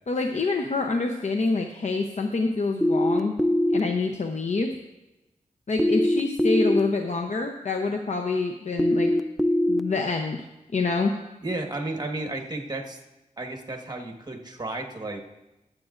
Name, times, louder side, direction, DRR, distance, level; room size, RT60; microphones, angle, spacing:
voice 1, 0.1-3.3 3.7-4.7 5.7-9.1 9.7-10.4 10.7-11.1, left 3 dB, 60° left, 3 dB, 0.7 m, -26 dB
sound 1, 2.8-3.8 5.8-6.8 8.8-9.8, left 1 dB, ahead, 0.4 m, -21 dB
voice 2, 11.4-13.0 13.4-15.2, right 2 dB, 30° right, 3 dB, 1.4 m, -33 dB
22.0 x 7.6 x 2.5 m, 1.0 s
wide cardioid pair, 95°, 14 cm